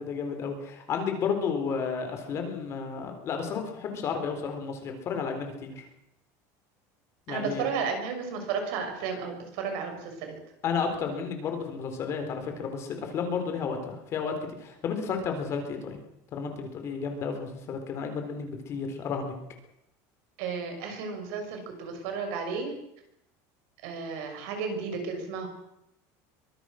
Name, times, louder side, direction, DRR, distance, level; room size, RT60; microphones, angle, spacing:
voice 1, 0.0-5.8 7.3-7.7 10.6-14.3 14.6-16.0 16.3-19.3, left 6 dB, 30° left, 5 dB, 3.9 m, -32 dB
voice 2, 7.3-10.4 20.4-22.7 23.8-25.5, right 5 dB, 65° right, 5 dB, 6.2 m, -33 dB
24.0 x 20.0 x 6.4 m, 0.82 s
cardioid pair, 170°, 9 cm